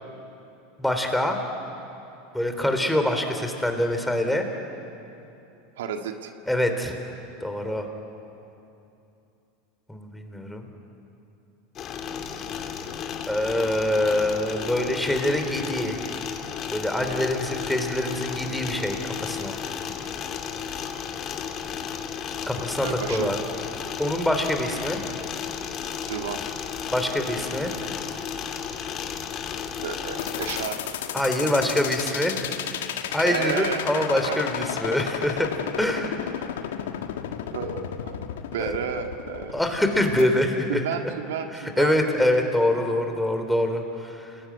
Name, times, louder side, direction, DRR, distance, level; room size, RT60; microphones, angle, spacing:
voice 1, 0.8-1.4 2.3-4.5 6.5-7.0 7.4-7.9 9.9-10.7 13.3-16.0 16.7-19.6 22.5-23.4 24.0-25.0 26.9-27.7 31.1-32.4 33.1-35.5 35.8-36.1 38.6-38.7 39.5-40.5 40.7-40.8 41.5-44.4, left 1 dB, 5° left, 5 dB, 3.8 m, -25 dB
voice 2, 5.8-6.3 22.8-23.3 26.1-26.4 29.8-30.8 33.2-34.4 37.5-38.2 38.4-39.6 40.2-40.3 40.7-42.0, right 7 dB, 80° right, 5 dB, 1.9 m, -31 dB
sound 1, 11.8-30.7, left 7 dB, 40° left, 2.7 m, -33 dB
sound 2, 30.2-40.2, left 10 dB, 80° left, 1.6 m, -32 dB
28.5 x 20.5 x 9.7 m, 2.8 s
hypercardioid pair, 100°, 0 cm